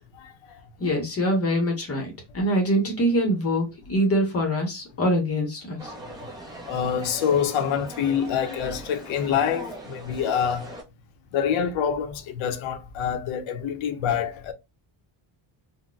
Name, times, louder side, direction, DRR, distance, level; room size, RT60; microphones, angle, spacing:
voice 1, 0.8-5.9, equal, 30° left, 0.8 m, -24 dB
sound 1, 5.8-10.8, right 1 dB, 10° right, 0.4 m, -40 dB
voice 2, 6.7-10.7 11.3-14.5, left 8 dB, 70° left, 0.7 m, -26 dB
3.9 x 2.1 x 2.3 m
cardioid pair, 175°, 50 cm